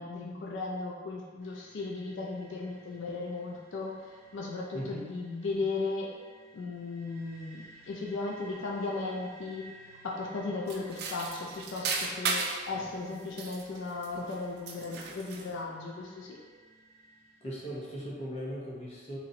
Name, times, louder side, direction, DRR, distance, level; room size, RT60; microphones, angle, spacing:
voice 1, 0.0-4.0 4.3-6.1 6.5-9.7 10.0-16.4, left 3 dB, 75° left, -2 dB, 0.4 m, -36 dB
sound 1, 1.4-18.0, right 1 dB, 15° right, 0.6 m, -56 dB
voice 2, 4.7-5.1 12.7-12.9 17.4-19.2, equal, 35° left, -5 dB, 0.7 m, -39 dB
sound 2, 10.7-12.7 13.2-14.4 14.7-15.5, right 4 dB, 55° right, 0.4 m, -35 dB
4.1 x 3.0 x 2.6 m, 1.5 s
head